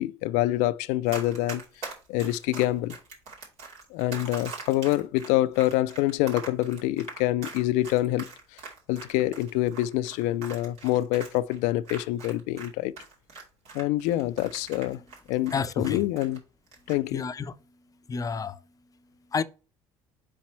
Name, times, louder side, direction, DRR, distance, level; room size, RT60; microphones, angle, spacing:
voice 1, 0.0-1.6 2.1-3.0 3.9-8.3 8.9-12.9 13.7-15.0 15.3-16.4 16.9-17.2, left 15 dB, 80° left, 0.4 m, -26 dB
Run, 1.1-12.7 13.0-16.4 16.7-17.0, right 4 dB, 65° right, 2.7 m, -41 dB
voice 2, 15.5-16.0 17.1-17.5 18.1-18.6 19.3-19.4, left 5 dB, 30° left, 0.6 m, -29 dB
5.2 x 4.2 x 4.4 m
supercardioid pair, 75°, 12 cm